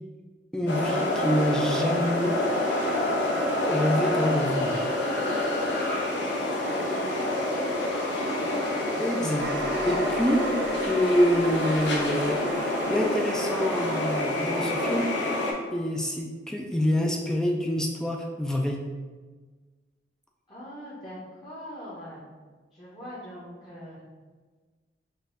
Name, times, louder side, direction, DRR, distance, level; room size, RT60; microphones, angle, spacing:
voice 1, 0.5-2.4 3.6-4.9 9.0-9.5 9.9-10.5 10.8-15.1 15.7-18.8, equal, 5° left, 1 dB, 0.3 m, -26 dB
sound 1, 0.7-15.5, left 1 dB, 75° left, 0.8 m, -27 dB
voice 2, 6.4-8.1 20.5-22.2 22.7-24.0, equal, 25° left, -9 dB, 0.9 m, -42 dB
sound 2, 9.4-15.9, right 3 dB, 80° right, 0.4 m, -40 dB
4.0 x 2.6 x 3.8 m, 1.4 s
head